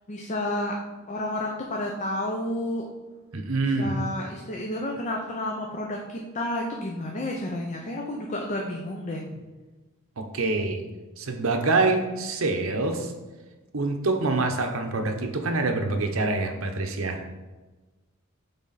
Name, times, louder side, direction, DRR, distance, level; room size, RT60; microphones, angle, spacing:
voice 1, 0.1-0.7 1.1-2.9 3.8-6.0 6.3-9.2, left 1 dB, 35° left, 0 dB, 0.6 m, -30 dB
voice 2, 3.3-4.0 10.2-10.8 11.2-13.1 13.7-17.3, right 3 dB, 80° right, 4 dB, 0.9 m, -26 dB
8.2 x 3.5 x 4.0 m, 1.2 s
head